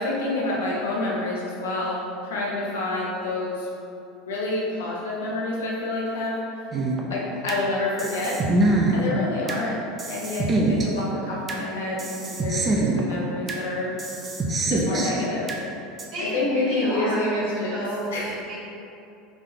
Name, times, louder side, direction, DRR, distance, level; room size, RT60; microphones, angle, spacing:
voice 1, 0.0-3.7 4.3-6.4 7.1-8.4 8.9-9.8 10.1-13.9 14.7-15.5 16.3-17.8 18.1-18.3, left 2 dB, 80° left, -5 dB, 0.9 m, -28 dB
sound 1, 6.7-7.6 8.0-9.6 10.0-11.6 12.0-13.6 14.0-15.6 16.0-16.1, right 2 dB, 30° right, 0.5 m, -24 dB
voice 2, 16.1-18.6, right 1 dB, 60° right, -9 dB, 1.0 m, -31 dB
3.5 x 2.7 x 3.9 m, 2.7 s
hypercardioid pair, 85°, 0 cm